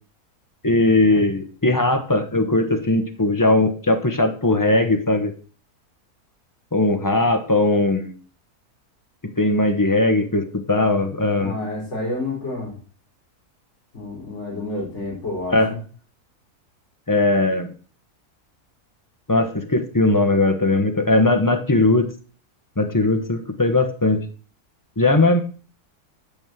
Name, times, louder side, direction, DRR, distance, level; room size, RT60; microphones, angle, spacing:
voice 1, 0.6-5.3 6.7-8.1 9.4-11.5 15.5-15.7 17.1-17.7 19.3-22.1 22.8-24.3 25.0-25.4, left 2 dB, 15° left, 7 dB, 1.0 m, -19 dB
voice 2, 11.4-12.7 13.9-15.8, left 2 dB, 45° left, -3 dB, 4.3 m, -29 dB
8.9 x 5.4 x 7.5 m, 0.41 s
omnidirectional pair, 1.7 m